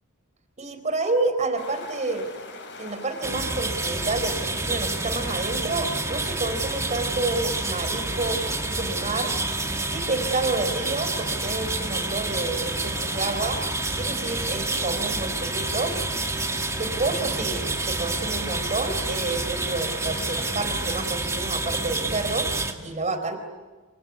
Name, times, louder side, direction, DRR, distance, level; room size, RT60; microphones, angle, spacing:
voice 1, 0.6-2.3 2.8-9.3 9.9-13.6 13.9-16.0 16.8-22.5 22.8-23.4, right 3 dB, 35° right, 8 dB, 3.9 m, -29 dB
sound 1, 1.6-21.0, left 3 dB, 60° left, 6.8 m, -41 dB
sound 2, 3.2-22.7, right 2 dB, 15° right, 2.1 m, -28 dB
27.5 x 26.0 x 8.4 m, 1.3 s
head